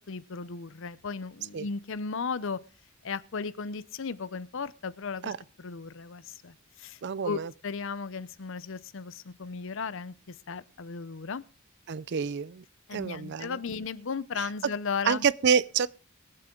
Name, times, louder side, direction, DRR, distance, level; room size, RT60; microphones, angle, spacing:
voice 1, 0.1-2.6 3.0-5.3 5.6-11.4 12.9-15.3, left 5 dB, 65° left, 0.7 m, -36 dB
voice 2, 7.0-7.5 11.9-12.6 12.9-13.6 14.4-14.5 15.0-15.9, right 6 dB, 60° right, 0.5 m, -27 dB
22.5 x 7.7 x 3.8 m
head